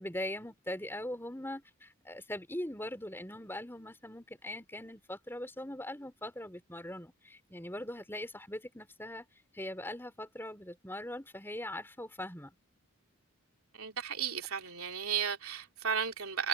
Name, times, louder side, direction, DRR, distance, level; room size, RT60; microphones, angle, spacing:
voice 1, 0.0-9.2 9.5-12.5, left 1 dB, 10° left, 4.3 m, -41 dB
voice 2, 13.8-16.5, right 7 dB, 85° right, 3.3 m, -34 dB
head